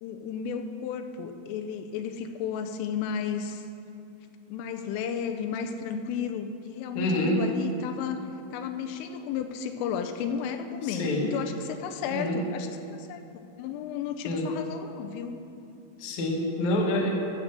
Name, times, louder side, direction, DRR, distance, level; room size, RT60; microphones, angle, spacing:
voice 1, 0.0-3.6 4.5-8.2 8.5-15.4, left 7 dB, 85° left, 6 dB, 3.1 m, -33 dB
voice 2, 6.9-7.4 10.8-11.3 12.1-12.4 14.3-14.5 16.0-17.1, left 1 dB, 65° left, -1 dB, 1.9 m, -27 dB
14.0 x 7.1 x 6.6 m, 2.7 s
omnidirectional pair, 5.8 m